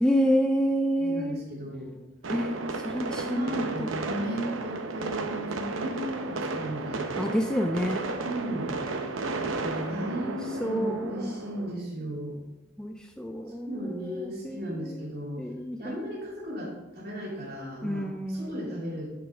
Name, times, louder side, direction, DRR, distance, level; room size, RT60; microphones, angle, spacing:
voice 1, 0.0-1.4 2.3-3.5 3.8-3.9 7.2-8.0 9.6-11.3 12.8-13.8 14.2-15.0 15.4-16.0 17.8-18.6, equal, 5° left, 3 dB, 0.3 m, -29 dB
voice 2, 1.0-1.9 2.9-7.1 8.2-8.8 9.9-12.4 13.6-15.5 15.8-19.1, equal, 50° right, -4 dB, 2.9 m, -36 dB
sound 1, 2.2-11.7, right 3 dB, 80° right, 0.8 m, -33 dB
8.8 x 6.4 x 3.5 m, 1.0 s
head